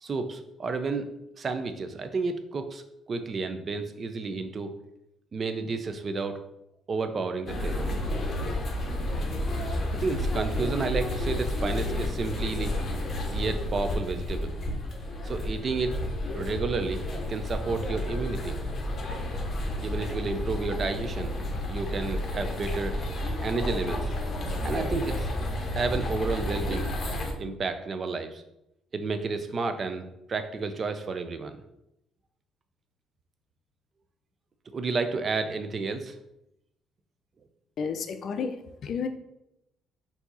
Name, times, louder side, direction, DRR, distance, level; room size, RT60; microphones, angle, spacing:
voice 1, 0.0-2.8 3.1-4.8 5.3-6.4 6.9-8.0 9.9-12.8 13.3-14.6 15.2-16.0 16.3-17.0 17.3-18.6 19.8-21.3 21.7-23.0 23.4-24.1 24.6-25.3 25.7-26.9 27.4-28.4 28.9-31.6 34.7-36.1, right 4 dB, 40° right, 9 dB, 0.5 m, -31 dB
sound 1, 7.5-27.3, left 1 dB, 40° left, 0.9 m, -31 dB
voice 2, 37.8-39.1, left 6 dB, 55° left, 8 dB, 0.5 m, -32 dB
4.5 x 2.8 x 4.0 m, 0.84 s
cardioid pair, 100°, 0 cm